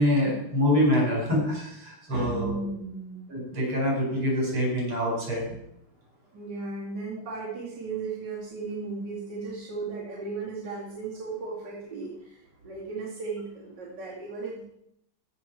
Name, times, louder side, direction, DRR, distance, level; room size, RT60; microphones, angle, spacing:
voice 1, 0.0-2.7 3.3-5.5, left 1 dB, 75° right, -3 dB, 5.8 m, -25 dB
voice 2, 2.3-3.3 6.3-14.6, right 4 dB, 50° right, -7 dB, 3.2 m, -36 dB
15.5 x 6.5 x 4.6 m, 0.76 s
omnidirectional pair, 2.4 m